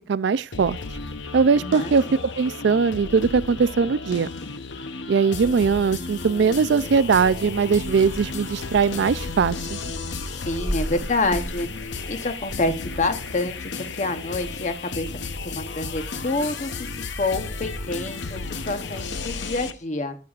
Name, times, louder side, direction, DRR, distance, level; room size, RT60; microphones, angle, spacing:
voice 1, 0.1-0.8 1.3-2.0 2.4-4.3 5.1-9.8, right 5 dB, 60° right, 0.4 m, -20 dB
sound 1, 0.5-19.7, left 4 dB, 65° left, 0.8 m, -33 dB
voice 2, 1.6-1.9 10.4-16.9 17.1-20.2, left 2 dB, 40° left, 0.9 m, -28 dB
sound 2, 6.7-13.7, equal, 5° right, 1.6 m, -37 dB
11.5 x 8.7 x 2.4 m
head